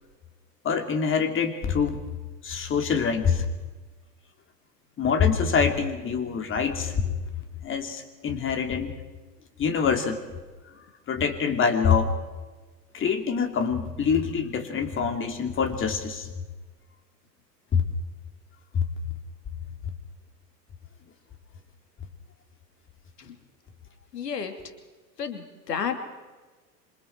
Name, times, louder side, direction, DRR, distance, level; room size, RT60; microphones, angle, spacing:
voice 1, 0.6-2.0 2.4-3.5 5.0-7.2 7.6-8.9 9.6-10.2 11.1-12.1 12.9-16.3 17.7-17.9 18.7-18.8, left 6 dB, 25° left, 6 dB, 3.0 m, -25 dB
voice 2, 24.1-24.5 25.2-25.9, left 7 dB, 70° left, 7 dB, 2.8 m, -31 dB
27.5 x 25.5 x 4.6 m, 1.3 s
figure-of-eight pair, 90°, 50 cm